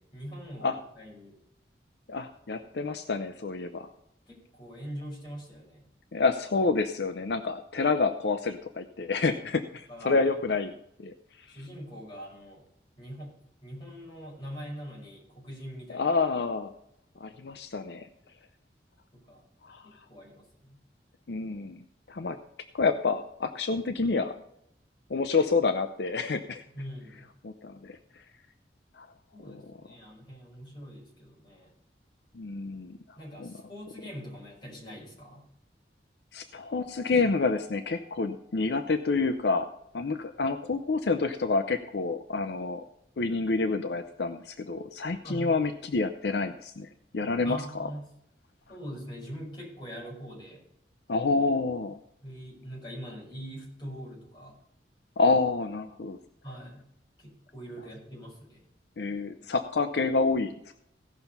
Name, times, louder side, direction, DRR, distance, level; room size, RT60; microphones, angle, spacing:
voice 1, 0.0-1.4 4.3-5.9 9.9-10.6 11.5-12.7 13.0-13.3 13.6-16.1 19.1-19.4 19.8-20.8 26.7-27.3 29.3-31.7 33.2-35.5 45.2-45.6 47.4-48.1 48.7-50.6 52.2-54.6 56.4-56.8 57.2-58.6, equal, 25° left, -3 dB, 5.1 m, -43 dB
voice 2, 2.1-3.9 6.1-10.7 11.0-11.1 15.9-16.7 17.2-18.1 19.6-19.8 21.3-22.4 22.7-24.4 25.1-26.6 27.4-28.0 29.0-29.1 29.4-29.6 32.3-33.0 33.4-33.5 36.3-39.7 39.9-42.8 43.2-46.9 47.1-47.9 51.1-52.0 55.2-56.2 59.0-60.5, left 4 dB, 70° left, 9 dB, 0.6 m, -28 dB
Keyboard (musical), 36.8-39.1, left 8 dB, 45° left, 2.7 m, -54 dB
16.5 x 5.9 x 5.5 m, 0.75 s
head